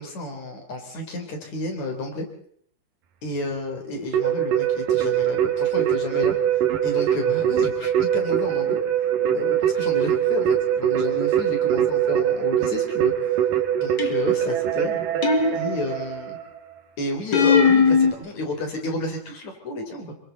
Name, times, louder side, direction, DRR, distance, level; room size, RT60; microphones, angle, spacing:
voice 1, 0.0-2.3 3.2-6.4 6.8-8.8 9.3-13.4 13.8-15.0 15.5-16.4 17.0-20.1, left 2 dB, 60° left, 4 dB, 4.9 m, -31 dB
Keyboard (musical), 4.1-16.6, right 10 dB, 85° right, 3.3 m, -23 dB
sound 1, 14.0-14.5 15.2-16.1 17.3-18.1, left 5 dB, 40° left, 2.0 m, -19 dB
27.5 x 23.5 x 4.1 m, 0.62 s
omnidirectional pair, 3.7 m